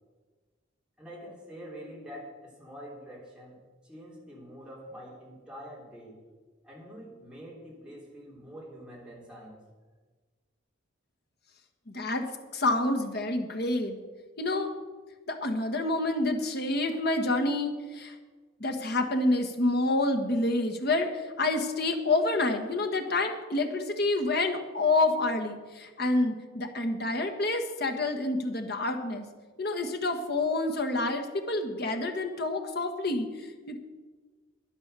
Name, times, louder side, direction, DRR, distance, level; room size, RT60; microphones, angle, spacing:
voice 1, 1.0-3.6 3.8-6.2 6.6-9.6, equal, 5° right, -4 dB, 3.3 m, -46 dB
voice 2, 11.9-14.0 14.4-14.7 15.3-18.2 18.6-29.2 29.6-33.8, left 2 dB, 50° left, 5 dB, 1.4 m, -28 dB
10.5 x 10.5 x 6.8 m, 1.4 s
head